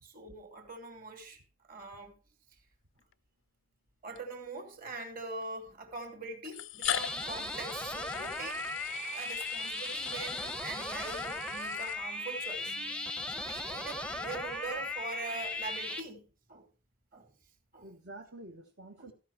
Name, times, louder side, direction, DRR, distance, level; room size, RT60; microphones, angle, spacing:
voice 1, 0.0-2.2 4.0-8.6 9.1-12.7 13.3-16.7 17.1-17.3 17.7-17.9 19.0-19.1, right 3 dB, 40° right, 2.5 m, -43 dB
sound 1, 3.0-3.1 4.2-4.3 5.4-5.5 6.4-12.4, left 11 dB, 70° left, 0.5 m, -41 dB
sound 2, 6.8-16.0, left 2 dB, 5° left, 0.7 m, -37 dB
voice 2, 12.7-13.4 17.8-19.1, right 2 dB, 60° right, 1.2 m, -50 dB
14.5 x 5.4 x 5.8 m
head